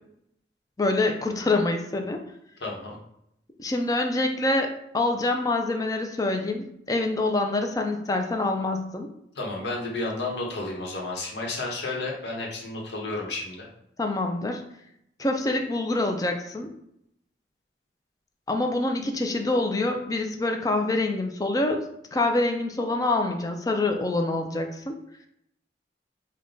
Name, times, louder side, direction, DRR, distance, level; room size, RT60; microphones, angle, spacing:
voice 1, 0.8-2.2 3.6-9.1 14.0-14.6 15.2-16.7 18.5-24.9, left 2 dB, 20° left, 4 dB, 0.4 m, -26 dB
voice 2, 2.6-3.0 9.4-13.7, left 2 dB, 80° left, -2 dB, 0.9 m, -32 dB
3.6 x 2.2 x 3.8 m, 0.76 s
head